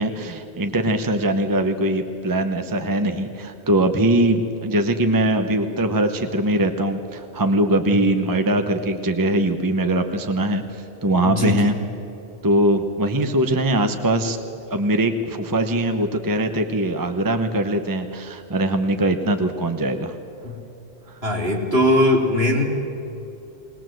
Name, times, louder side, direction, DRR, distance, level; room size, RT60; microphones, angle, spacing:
voice 1, 0.0-10.6 11.0-11.7 12.4-14.4 14.7-20.1 21.1-21.2, right 1 dB, 20° right, 7 dB, 0.9 m, -21 dB
voice 2, 7.9-8.2 11.2-11.7 20.4-20.5 21.2-22.6, left 1 dB, 60° right, -1 dB, 3.4 m, -20 dB
20.5 x 19.5 x 7.7 m, 2.9 s
omnidirectional pair, 1.2 m